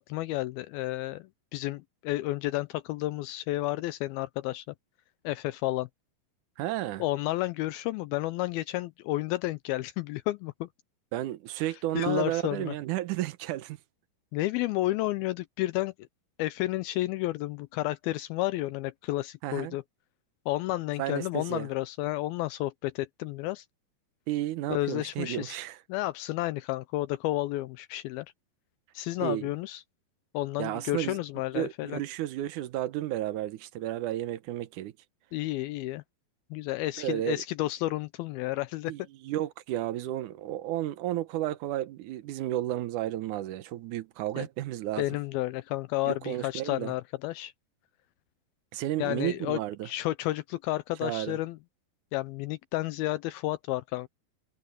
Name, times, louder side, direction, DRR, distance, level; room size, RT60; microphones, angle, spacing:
voice 1, 0.0-4.7 5.2-5.9 7.0-10.7 12.0-12.7 14.3-15.9 16.4-19.8 20.5-23.7 24.7-25.6 25.9-28.3 28.9-29.8 30.3-32.0 35.3-36.0 36.5-38.9 44.4-44.5 45.0-47.5 49.0-51.6 52.1-54.1, left 17 dB, 85° left, 2.1 m, -31 dB
voice 2, 6.6-7.0 11.1-13.8 19.4-19.8 21.0-21.7 24.3-25.8 29.2-29.5 30.6-31.2 31.5-34.9 37.0-37.4 38.9-45.1 46.1-46.9 48.7-49.9 51.0-51.4, right 14 dB, 85° right, 1.8 m, -32 dB
omnidirectional pair, 4.9 m